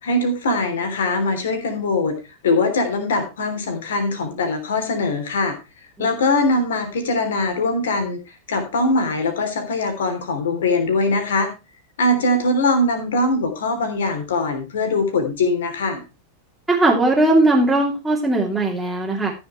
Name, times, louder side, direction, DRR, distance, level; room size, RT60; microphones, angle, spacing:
voice 1, 0.0-2.1 2.4-5.6 6.0-8.2 8.5-11.5 12.0-16.0, left 2 dB, 60° left, 6 dB, 3.3 m, -21 dB
voice 2, 16.7-19.3, right 2 dB, 5° right, -4 dB, 2.8 m, -18 dB
14.0 x 7.1 x 4.4 m, 0.29 s
figure-of-eight pair, 90°, 0 cm